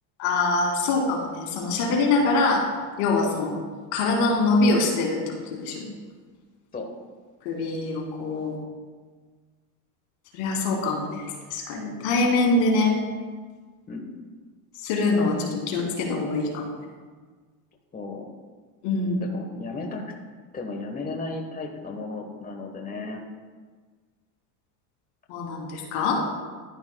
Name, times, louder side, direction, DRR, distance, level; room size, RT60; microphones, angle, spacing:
voice 1, 0.2-2.7 3.0-3.5 3.9-5.9 7.4-8.6 10.3-12.9 14.8-16.6 18.8-19.2 25.3-26.3, left 3 dB, 70° left, 0 dB, 2.6 m, -24 dB
voice 2, 11.7-12.1 13.9-14.1 17.9-18.2 19.2-20.1 20.5-23.2, left 3 dB, 20° left, 2 dB, 1.2 m, -35 dB
11.5 x 10.5 x 2.3 m, 1.5 s
supercardioid pair, 105°, 47 cm